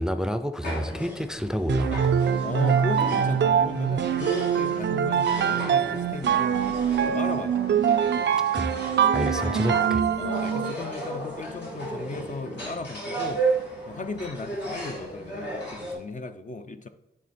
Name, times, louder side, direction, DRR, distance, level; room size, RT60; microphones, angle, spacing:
voice 1, 0.0-2.2 8.5-8.7 9.1-10.0, equal, 5° right, 0.5 m, -28 dB
sound 1, 0.6-15.9, right 2 dB, 75° left, 2.9 m, -34 dB
sound 2, 1.7-10.9, right 8 dB, 80° right, 0.4 m, -24 dB
voice 2, 2.4-8.5 10.2-13.5 13.9-16.9, left 3 dB, 45° left, 0.6 m, -36 dB
10.5 x 3.6 x 4.3 m
cardioid pair, 65°, 18 cm